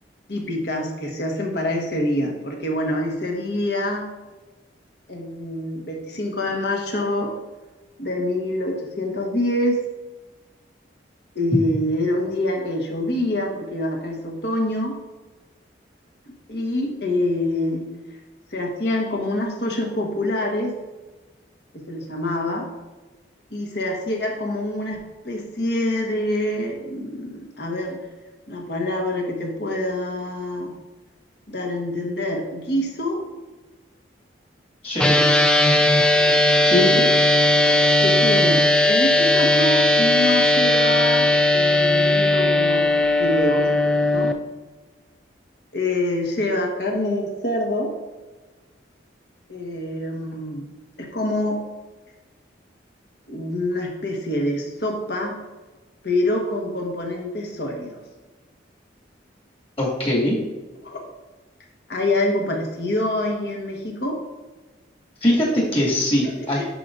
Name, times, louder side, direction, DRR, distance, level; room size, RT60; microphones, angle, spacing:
voice 1, 0.3-4.1 5.1-7.3 8.0-9.8 11.3-15.0 16.5-17.9 18.5-20.8 21.7-22.7 23.5-28.1 28.5-30.8 31.5-33.2 35.9-36.4 37.6-42.8 43.2-43.7 44.1-44.3 45.7-48.0 49.5-50.7 51.0-51.6 53.3-55.4 56.0-58.0 60.8-61.0 61.9-64.2 66.2-66.7, left 1 dB, 60° left, 1 dB, 1.3 m, -26 dB
voice 2, 34.8-35.3 36.6-37.0 59.8-60.4 65.2-66.7, left 1 dB, 30° left, -4 dB, 2.1 m, -21 dB
sound 1, 35.0-44.3, left 1 dB, 5° left, 0.3 m, -17 dB
10.5 x 4.8 x 2.6 m, 1.2 s
head